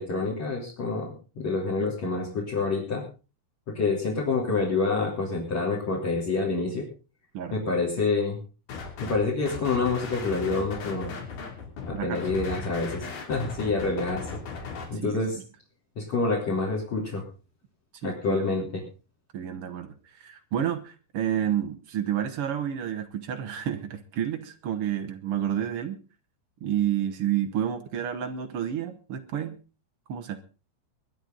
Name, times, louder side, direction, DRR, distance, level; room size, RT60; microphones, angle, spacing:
voice 1, 0.0-3.0 3.7-6.9 7.5-8.4 9.0-11.2 11.9-15.4 16.0-17.2 18.0-18.8, left 3 dB, 45° left, 0 dB, 4.5 m, -27 dB
sound 1, 8.7-9.2 9.5-14.8, left 5 dB, 70° left, 4.8 m, -37 dB
voice 2, 18.0-18.4 19.3-26.0 26.6-29.6 30.1-30.4, right 10 dB, 90° right, 7 dB, 1.2 m, -30 dB
23.5 x 10.5 x 3.9 m, 0.35 s
omnidirectional pair, 4.3 m